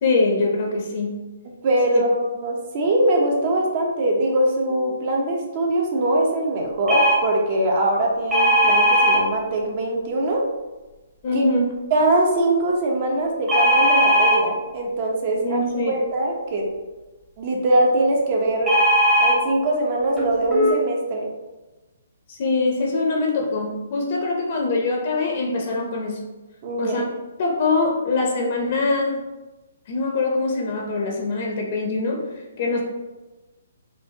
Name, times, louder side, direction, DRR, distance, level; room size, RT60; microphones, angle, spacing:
voice 1, 0.0-1.1 1.9-2.0 11.2-11.7 15.4-15.9 22.3-26.2 26.8-27.0 27.4-29.2 29.9-32.8, left 3 dB, 45° left, 0 dB, 0.7 m, -23 dB
voice 2, 1.6-10.5 11.3-11.4 11.9-15.6 15.9-16.7 17.4-18.8 19.2-21.3 26.6-27.0, right 1 dB, 40° right, 0 dB, 0.8 m, -22 dB
sound 1, 6.9-7.2 8.3-9.2 13.5-14.4 18.7-19.4 20.2-20.3 20.5-20.7, equal, 10° right, 0.9 m, -17 dB
4.8 x 2.5 x 2.8 m, 1.1 s
hypercardioid pair, 160°, 0 cm